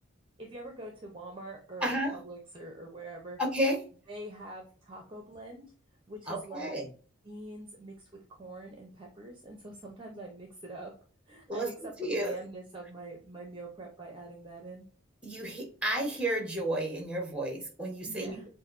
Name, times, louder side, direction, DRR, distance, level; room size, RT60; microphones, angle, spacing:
voice 1, 0.4-3.4 4.1-5.7 6.1-6.7 7.2-10.9 11.3-14.9 18.1-18.5, right 2 dB, 25° right, 2 dB, 0.8 m, -44 dB
voice 2, 1.8-2.2 3.4-3.8 6.3-6.9 11.5-11.7 12.0-12.4 15.2-18.4, right 1 dB, 5° right, 2 dB, 1.2 m, -32 dB
7.1 x 2.6 x 2.6 m, 0.40 s
head